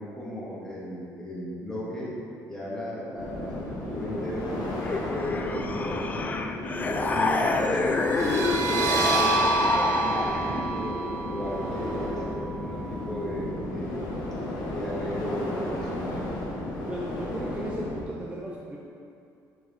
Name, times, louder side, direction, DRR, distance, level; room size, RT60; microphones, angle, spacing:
voice 1, 0.0-2.2 2.5-4.6 5.1-6.5 6.9-11.0 11.3-14.0 14.7-16.3, equal, 10° left, -8 dB, 2.1 m, -35 dB
sound 1, 3.2-18.0, left 1 dB, 80° left, 1.9 m, -34 dB
sound 2, 4.8-10.7, left 3 dB, 25° left, 0.4 m, -28 dB
sound 3, 8.0-13.4, right 3 dB, 70° right, 1.5 m, -29 dB
voice 2, 16.9-18.8, right 1 dB, 15° right, -4 dB, 0.7 m, -36 dB
10.5 x 4.8 x 4.3 m, 2.5 s
cardioid pair, 150°, 7 cm